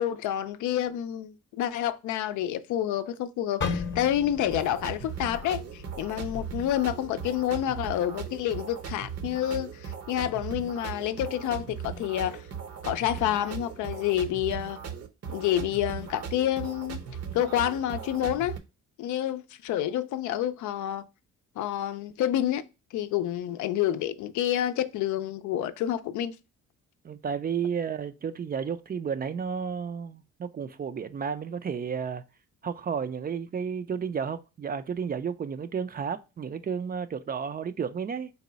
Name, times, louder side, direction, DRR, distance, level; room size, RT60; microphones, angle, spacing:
voice 1, 0.0-12.4 12.8-14.8 15.3-17.0 17.3-18.6 19.0-21.1 21.6-22.6 22.9-26.4, left 11 dB, 75° left, 0.5 m, -28 dB
sound 1, 3.6-7.6 8.0-8.3 8.9-9.2, left 5 dB, 40° left, 0.7 m, -37 dB
sound 2, 4.5-18.6, right 7 dB, 55° right, 0.7 m, -38 dB
voice 2, 27.0-32.2 32.6-38.3, right 6 dB, 30° right, 0.4 m, -32 dB
4.1 x 2.2 x 3.9 m
cardioid pair, 90°, 30 cm